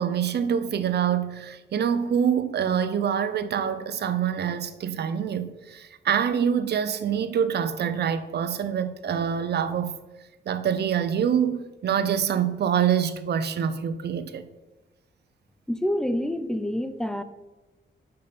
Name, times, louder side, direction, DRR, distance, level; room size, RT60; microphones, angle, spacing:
voice 1, 0.0-10.0 10.5-14.4, right 8 dB, 60° right, 0.5 m, -25 dB
voice 2, 15.7-17.2, left 1 dB, 5° left, 0.3 m, -27 dB
5.5 x 5.1 x 5.7 m
wide cardioid pair, 175°, 19 cm